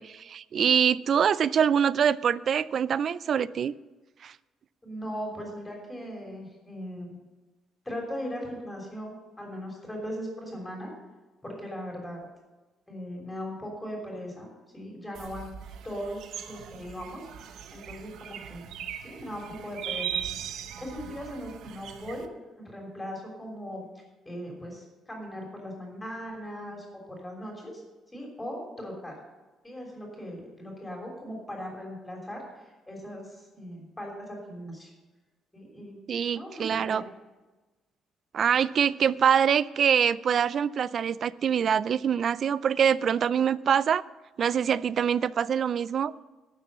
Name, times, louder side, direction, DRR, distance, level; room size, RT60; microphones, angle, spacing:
voice 1, 0.0-3.7 4.2-4.3 36.1-37.0 38.3-44.0 44.4-46.1, right 8 dB, 45° right, 19 dB, 0.4 m, -24 dB
voice 2, 4.8-7.2 7.8-10.9 11.4-12.3 12.9-15.5 15.8-18.6 19.0-20.2 20.8-22.3 22.6-27.8 28.1-29.2 29.6-34.9 35.5-36.0 36.3-37.0, equal, 10° left, 0 dB, 3.3 m, -39 dB
sound 1, 15.1-22.3, right 9 dB, 70° right, 0.8 m, -39 dB
12.0 x 7.1 x 6.8 m, 1.2 s
cardioid pair, 150°, 0 cm